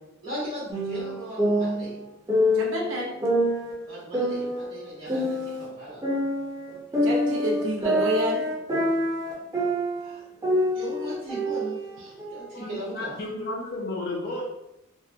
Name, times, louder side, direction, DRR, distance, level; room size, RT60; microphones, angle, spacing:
voice 1, 0.2-2.0 3.9-6.0 10.0-10.2 10.7-13.1, right 1 dB, 50° right, -10 dB, 1.1 m, -38 dB
sound 1, 0.7-2.8 3.2-5.7 6.0-10.1 10.4-12.4, equal, 15° right, 0.6 m, -26 dB
voice 2, 2.5-3.1 7.0-8.5, right 1 dB, 70° right, -2 dB, 0.6 m, -28 dB
voice 3, 12.5-14.4, left 2 dB, 50° left, -3 dB, 0.4 m, -33 dB
2.8 x 2.0 x 2.4 m, 0.88 s
head